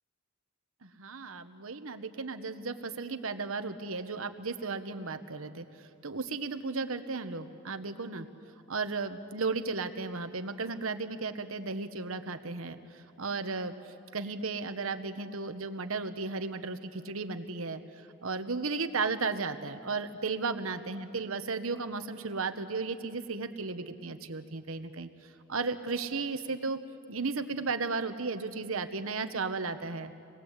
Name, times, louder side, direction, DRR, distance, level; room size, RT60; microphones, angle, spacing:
voice 1, 0.8-5.7 6.0-8.3 8.7-13.7 14.1-17.8 18.2-25.1 25.5-26.8 27.1-30.1, right 4 dB, 75° right, 9 dB, 1.2 m, -34 dB
27.0 x 20.5 x 8.2 m, 2.5 s
head